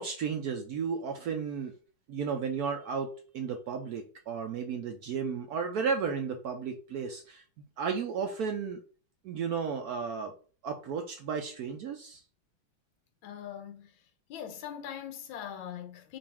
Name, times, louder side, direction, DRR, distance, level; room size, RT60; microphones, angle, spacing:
voice 1, 0.0-1.7 2.1-7.4 7.8-8.8 9.2-10.3 10.6-12.2, right 6 dB, 80° right, 0.8 m, -33 dB
voice 2, 13.2-14.0 14.3-16.2, left 9 dB, 80° left, 1.5 m, -41 dB
5.3 x 2.6 x 3.4 m
omnidirectional pair, 2.2 m